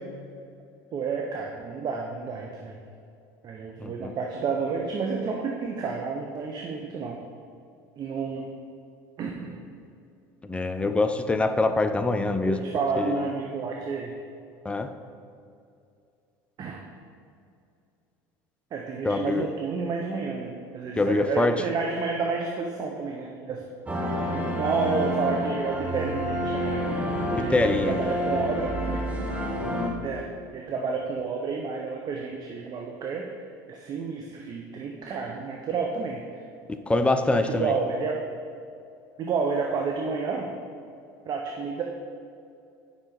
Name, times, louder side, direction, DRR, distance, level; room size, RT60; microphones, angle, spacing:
voice 1, 0.9-2.8 3.4-7.2 8.0-8.5 9.2-9.6 12.4-14.1 16.6-16.8 18.7-23.6 24.3-26.9 27.3-29.3 30.0-30.3 30.5-33.3 33.7-36.4 37.3-38.2 39.2-40.5 41.2-41.8, right 5 dB, 45° right, 1 dB, 0.9 m, -30 dB
voice 2, 3.8-4.1 10.4-12.6 13.0-13.2 14.6-14.9 19.0-19.5 21.0-21.6 27.3-28.0 36.9-37.7, left 2 dB, 10° left, 8 dB, 0.6 m, -24 dB
sound 1, 23.9-29.9, equal, 15° right, 1.2 m, -29 dB
9.0 x 5.7 x 4.0 m, 2.5 s
supercardioid pair, 95°, 10 cm